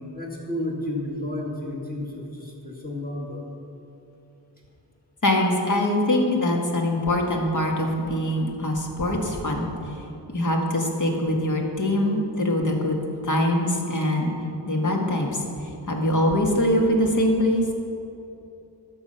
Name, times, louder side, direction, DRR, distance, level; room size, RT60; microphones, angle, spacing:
voice 1, 0.0-3.5, left 1 dB, 20° left, -3 dB, 2.2 m, -32 dB
voice 2, 5.2-9.7 10.3-14.3 14.7-15.4 15.9-17.6, left 1 dB, 45° left, 0 dB, 1.7 m, -23 dB
12.5 x 7.0 x 5.5 m, 2.9 s
wide cardioid pair, 95°, 44 cm